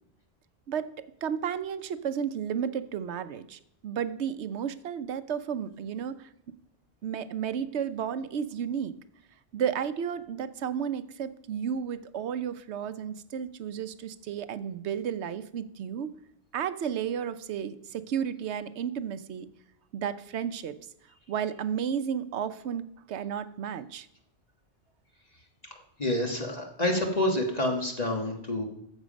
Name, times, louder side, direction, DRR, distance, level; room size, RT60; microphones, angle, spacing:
voice 1, 1.2-6.3 7.0-8.9 9.5-16.1 16.5-19.5 19.9-20.8 21.3-24.1, right 8 dB, 70° right, 12 dB, 1.0 m, -32 dB
voice 2, 26.0-28.7, left 1 dB, 35° left, 1 dB, 1.5 m, -28 dB
14.0 x 7.3 x 5.2 m, 0.77 s
omnidirectional pair, 1.2 m